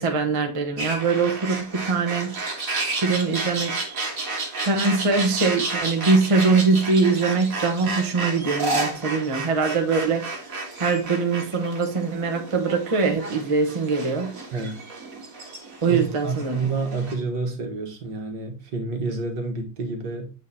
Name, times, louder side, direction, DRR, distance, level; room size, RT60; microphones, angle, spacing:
voice 1, 0.0-2.3 3.0-3.7 4.6-10.3 10.8-14.3 15.8-16.7, right 4 dB, 20° right, 0.9 m, -22 dB
sound 1, 0.8-17.1, right 3 dB, 45° right, 2.0 m, -32 dB
voice 2, 15.9-20.3, right 3 dB, 65° right, 1.9 m, -29 dB
8.3 x 3.8 x 4.1 m
omnidirectional pair, 2.1 m